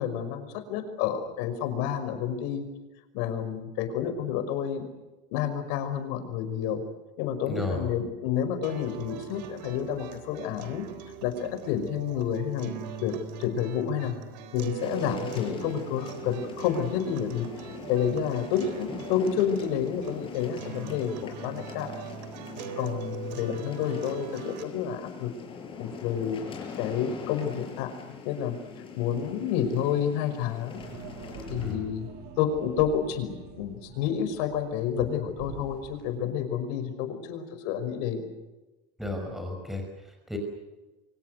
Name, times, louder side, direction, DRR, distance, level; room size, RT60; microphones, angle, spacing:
voice 1, 0.0-2.6 3.1-4.9 5.3-6.8 7.2-10.9 11.2-14.1 14.5-17.5 17.9-21.9 22.8-25.3 25.8-26.4 26.8-27.9 28.2-28.6 29.0-30.8 31.5-32.1 32.4-38.3, left 8 dB, 60° left, 8 dB, 5.5 m, -29 dB
voice 2, 7.5-7.9 31.6-31.9 39.0-40.4, left 2 dB, ahead, 3 dB, 5.3 m, -34 dB
sound 1, 8.6-24.6, right 8 dB, 85° right, 3.9 m, -41 dB
sound 2, 14.8-31.7, left 6 dB, 25° left, 5.8 m, -43 dB
sound 3, 30.7-36.2, right 5 dB, 45° right, 7.9 m, -45 dB
28.5 x 25.0 x 6.6 m, 1.1 s
supercardioid pair, 160°, 21 cm